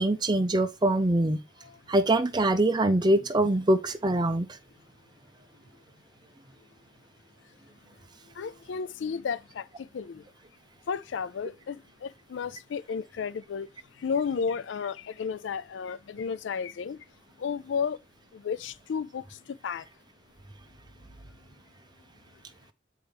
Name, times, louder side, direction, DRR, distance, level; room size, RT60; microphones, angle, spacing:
voice 1, 0.0-1.4 1.9-4.5, right 1 dB, 20° right, 0.5 m, -23 dB
voice 2, 8.4-9.7 9.9-10.2 10.9-13.7 14.0-17.0 17.4-18.0 18.3-19.2 19.6-19.8, left 6 dB, 70° left, 0.4 m, -32 dB
7.9 x 4.5 x 3.4 m
head